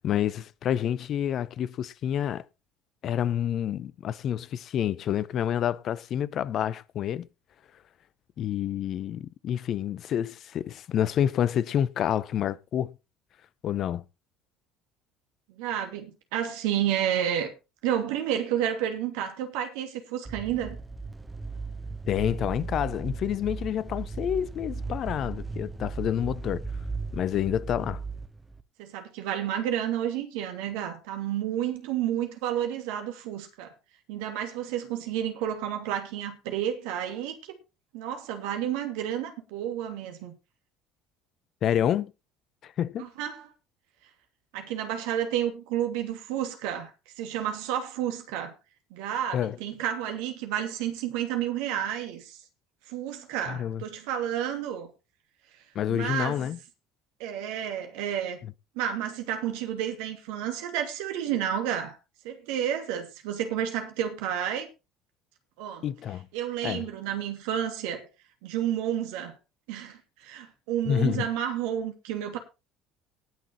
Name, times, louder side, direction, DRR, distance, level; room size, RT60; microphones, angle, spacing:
voice 1, 0.0-2.4 3.0-7.3 8.4-12.9 13.6-14.0 22.1-26.6 27.1-28.0 41.6-42.1 42.6-43.1 49.3-49.6 53.5-53.8 55.7-56.6 65.8-66.3 66.6-66.9 70.9-71.3, left 10 dB, 50° left, 0.7 m, -28 dB
voice 2, 15.5-17.5 17.8-20.8 28.8-33.7 34.1-37.5 37.9-40.3 43.0-43.5 44.5-48.5 48.9-52.4 52.9-54.9 55.9-56.4 57.2-58.4 58.7-62.0 62.2-64.7 65.6-65.8 66.3-68.1 68.4-69.3 69.7-72.4, right 10 dB, 65° right, 2.7 m, -31 dB
sound 1, 20.2-28.6, right 4 dB, 10° right, 1.3 m, -36 dB
18.5 x 6.2 x 4.3 m
figure-of-eight pair, 60°, 0 cm